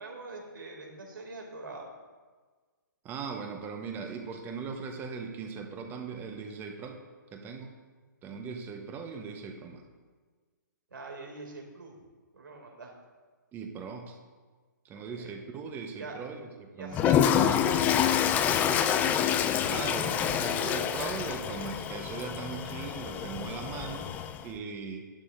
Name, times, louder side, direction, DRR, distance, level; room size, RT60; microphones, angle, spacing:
voice 1, 0.0-1.9 10.9-12.0 12.3-12.9 14.9-15.4 16.0-16.2 16.8-18.4 19.7-20.0, right 3 dB, 75° right, 1 dB, 2.5 m, -44 dB
voice 2, 3.0-7.0 7.3-7.7 8.2-9.8 13.5-14.2 14.8-17.0 19.7-24.2 24.4-25.1, right 5 dB, 20° right, 5 dB, 1.0 m, -39 dB
Toilet flush, 16.9-24.4, left 9 dB, 15° left, 0.4 m, -27 dB
12.0 x 11.5 x 2.6 m, 1.4 s
hypercardioid pair, 135°, 11 cm